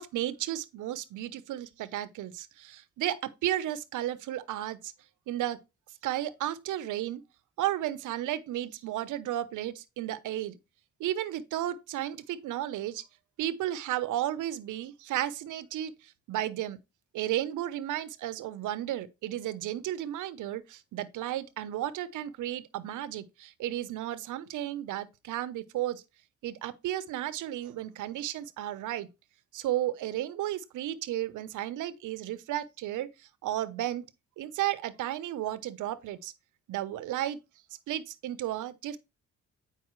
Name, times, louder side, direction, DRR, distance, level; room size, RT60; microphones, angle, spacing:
voice 1, 0.0-4.9 5.3-5.6 6.0-7.2 7.6-10.6 11.0-13.0 13.4-15.9 16.3-16.8 17.1-26.0 26.4-29.1 29.5-33.1 33.4-34.1 34.4-36.3 36.7-37.4 37.9-39.0, right 13 dB, 80° right, 0.9 m, -33 dB
8.6 x 5.3 x 3.1 m
cardioid pair, 90°, 30 cm